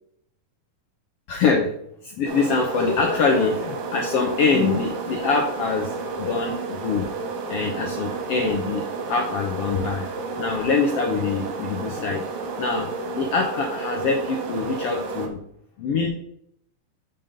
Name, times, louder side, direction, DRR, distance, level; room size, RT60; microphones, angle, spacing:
voice 1, 1.3-1.7 2.0-5.9 6.2-7.1 7.5-8.8 9.1-10.1 10.4-12.2 12.6-12.9 13.2-15.4 15.8-16.1, left 4 dB, 85° left, 1 dB, 1.3 m, -24 dB
sound 1, 2.3-15.3, right 4 dB, 75° right, 2.7 m, -31 dB
5.7 x 5.4 x 5.3 m, 0.71 s
omnidirectional pair, 3.8 m